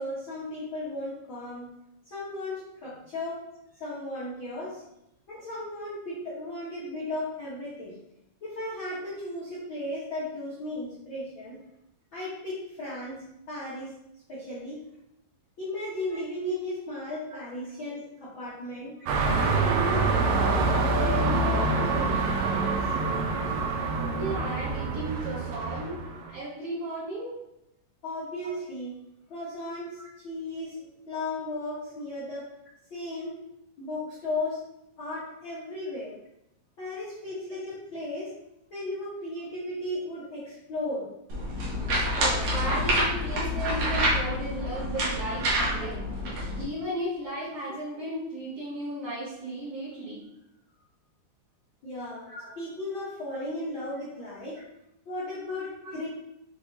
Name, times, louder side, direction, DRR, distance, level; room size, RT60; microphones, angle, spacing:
voice 1, 0.0-1.7 2.1-3.4 3.7-4.8 5.3-8.0 8.4-11.6 12.1-13.9 14.3-14.8 15.6-18.9 19.3-20.7 21.0-22.1 22.4-23.0 28.0-28.9 29.3-32.5 32.9-33.4 33.8-34.6 35.0-36.1 36.8-38.3 38.7-41.1 51.8-54.6 55.0-56.1, left 1 dB, 70° left, -10 dB, 1.1 m, -35 dB
voice 2, 16.1-16.5 17.3-17.4 17.8-17.9 19.0-19.1 23.8-26.0 26.3-27.4 28.4-28.5 41.9-46.0 46.6-50.2 52.3-52.5 55.5-55.6 55.8-55.9, right 1 dB, 50° right, -13 dB, 2.5 m, -35 dB
sound 1, 19.1-26.3, right 3 dB, 85° right, 2.3 m, -26 dB
sound 2, 41.3-46.6, equal, 65° right, 1.7 m, -27 dB
6.2 x 3.0 x 2.6 m, 0.82 s
omnidirectional pair, 3.9 m